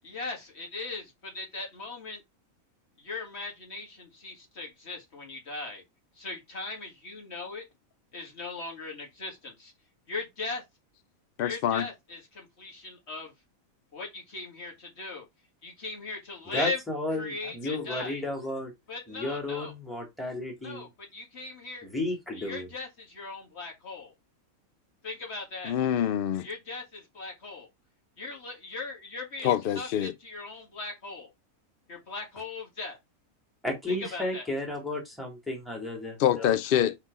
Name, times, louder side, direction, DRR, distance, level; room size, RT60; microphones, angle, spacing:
voice 1, 0.0-2.2 3.0-5.8 6.2-7.6 8.1-9.7 10.1-10.6 11.4-13.3 13.9-15.3 15.6-16.8 17.1-18.2 18.9-19.7 20.6-21.9 22.3-24.1 25.0-25.8 26.4-27.7 28.2-31.3 31.9-33.0 33.9-34.5, left 3 dB, 50° left, 2.2 m, -38 dB
voice 2, 11.4-11.9 25.7-26.5 29.4-30.1 36.2-37.0, left 10 dB, 80° left, 0.5 m, -25 dB
voice 3, 16.5-18.7 19.1-20.8 21.8-22.7 33.6-36.6, left 2 dB, ahead, 2.2 m, -33 dB
4.3 x 4.2 x 5.3 m
omnidirectional pair, 1.5 m